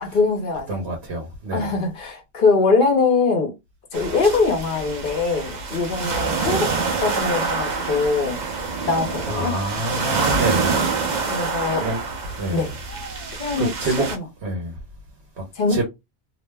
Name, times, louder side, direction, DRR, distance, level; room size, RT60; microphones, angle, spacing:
voice 1, 0.0-0.8 1.5-3.5 3.9-6.7 7.0-8.4 8.9-9.5 11.3-11.9 12.5-12.8 13.4-13.7 14.1-14.2 15.5-15.8, left 4 dB, 55° left, 0.9 m, -22 dB
voice 2, 0.7-1.7 9.2-10.8 11.8-12.0 12.3-12.7 13.6-14.1 14.4-14.7 15.7-15.8, right 2 dB, 85° right, 1.1 m, -27 dB
sound 1, 3.9-14.2, right 4 dB, 50° right, 0.7 m, -26 dB
2.6 x 2.0 x 3.3 m
omnidirectional pair, 1.1 m